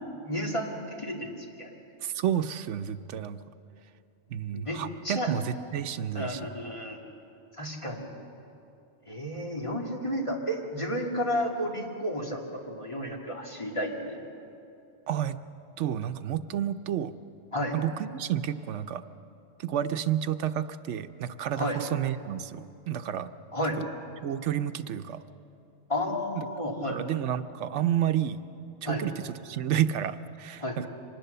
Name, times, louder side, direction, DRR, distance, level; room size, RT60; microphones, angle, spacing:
voice 1, 0.3-1.7 4.5-5.3 6.1-7.0 7.6-8.1 9.1-14.2 17.5-17.8 21.6-21.8 23.5-23.8 25.9-27.0 28.8-29.0 30.6-30.8, equal, 25° left, -1 dB, 2.5 m, -32 dB
voice 2, 2.0-3.4 4.3-6.5 15.1-15.4 15.8-17.1 17.7-19.0 19.6-23.3 24.2-25.2 26.3-26.5 26.9-28.4 28.8-30.9, right 10 dB, 85° right, 10 dB, 1.0 m, -30 dB
24.5 x 20.0 x 6.8 m, 2.6 s
omnidirectional pair, 1.2 m